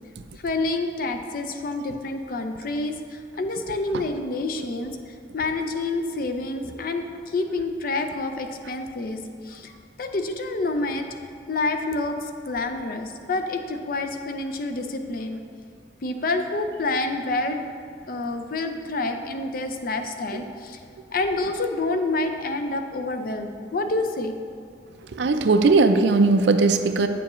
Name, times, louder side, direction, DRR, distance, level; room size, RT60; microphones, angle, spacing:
voice 1, 0.4-9.7 10.0-11.2 11.5-15.4 16.0-17.6 18.1-20.8 21.1-24.4, left 2 dB, 50° left, 6 dB, 0.5 m, -28 dB
voice 2, 25.1-27.1, right 3 dB, 70° right, 8 dB, 0.4 m, -19 dB
8.3 x 6.9 x 3.0 m, 2.3 s
head